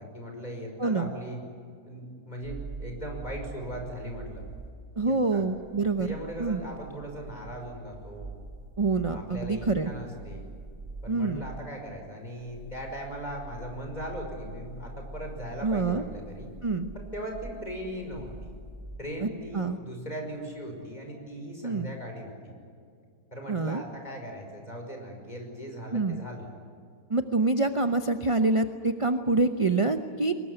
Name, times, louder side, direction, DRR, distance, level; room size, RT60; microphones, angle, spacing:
voice 1, 0.0-1.4 1.9-4.4 5.0-5.4 6.0-8.3 9.1-10.5 11.0-16.5 16.9-18.5 19.0-22.5 23.3-26.5, equal, 25° left, 2 dB, 5.7 m, -39 dB
sound 1, 2.4-11.6 12.2-19.0, right 2 dB, 50° right, 7.1 m, -44 dB
voice 2, 5.0-6.1 6.4-6.6 8.8-9.9 11.1-11.4 15.6-16.0 16.6-16.9 19.2-19.3 19.5-19.8 21.6-21.9 23.5-23.8 25.9-26.2 27.1-30.3, right 3 dB, 30° right, 8 dB, 0.6 m, -26 dB
24.0 x 21.0 x 9.8 m, 2.3 s
omnidirectional pair, 1.8 m